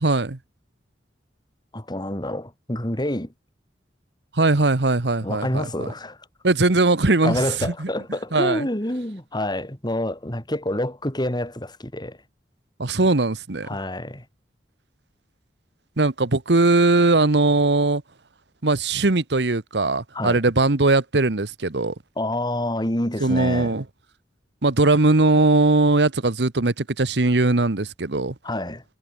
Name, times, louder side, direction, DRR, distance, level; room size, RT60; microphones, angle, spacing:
voice 1, 0.0-0.4 4.3-5.9 6.4-7.9 8.3-8.7 12.8-13.7 16.0-18.0 18.6-21.9 23.2-23.8 24.6-28.3, right 2 dB, 75° right, 1.3 m, -20 dB
voice 2, 1.7-3.3 5.2-6.2 7.2-12.2 13.7-14.2 20.1-20.4 22.2-23.7 28.4-28.8, left 1 dB, 25° left, 4.8 m, -27 dB
head